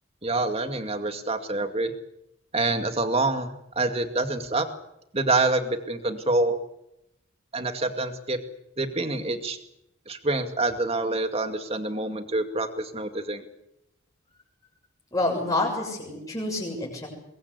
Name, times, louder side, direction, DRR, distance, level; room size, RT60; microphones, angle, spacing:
voice 1, 0.2-1.9 2.5-4.7 5.1-6.6 7.5-8.4 8.8-9.6 10.1-13.4, right 2 dB, 30° right, 6 dB, 2.3 m, -26 dB
voice 2, 15.1-17.1, left 2 dB, 15° left, -2 dB, 7.1 m, -28 dB
22.5 x 22.0 x 8.3 m, 0.83 s
head